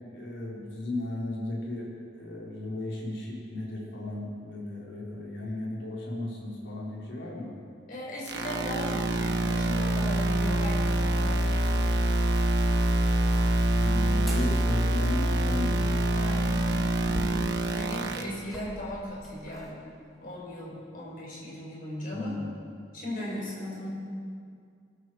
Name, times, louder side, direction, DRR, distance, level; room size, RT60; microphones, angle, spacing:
voice 1, 0.1-7.5 13.8-16.2 22.1-22.5, left 2 dB, 80° left, -4 dB, 4.0 m, -35 dB
voice 2, 7.9-11.9 16.1-19.8 20.2-22.4 22.9-23.9, left 1 dB, 45° left, -4 dB, 5.1 m, -37 dB
sound 1, 8.3-18.2, right 1 dB, 60° right, 1.2 m, -25 dB
sound 2, 14.1-14.5 16.2-19.7 20.4-20.5, equal, ahead, 2.2 m, -43 dB
22.0 x 13.0 x 4.7 m, 2.2 s
head